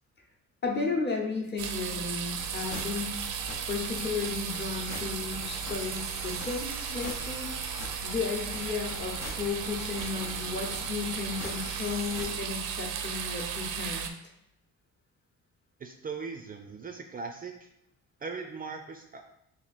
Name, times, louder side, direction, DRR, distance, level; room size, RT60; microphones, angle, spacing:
voice 1, 0.6-3.2 3.7-7.5 8.0-14.1, left 4 dB, 35° left, 0 dB, 0.9 m, -34 dB
sound 1, 1.6-14.1, right 8 dB, 85° right, 0.5 m, -35 dB
sound 2, 2.4-12.4, left 3 dB, 60° left, 0.8 m, -43 dB
voice 2, 15.8-17.7 18.2-19.3, right 4 dB, 30° right, 4 dB, 0.4 m, -39 dB
3.0 x 2.6 x 4.1 m, 0.79 s
cardioid pair, 90°, 30 cm